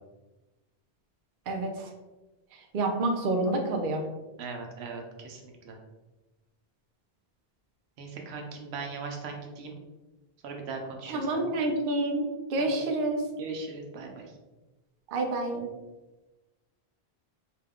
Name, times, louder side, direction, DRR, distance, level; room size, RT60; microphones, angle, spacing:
voice 1, 2.7-4.0 11.1-12.2 12.5-13.2 15.1-15.7, right 2 dB, 60° right, 2 dB, 0.7 m, -28 dB
voice 2, 4.4-5.8 8.0-9.8 10.4-11.6 12.6-12.8 13.4-14.3, right 4 dB, 85° right, 2 dB, 0.9 m, -39 dB
2.8 x 2.3 x 3.4 m, 1.1 s
omnidirectional pair, 1.1 m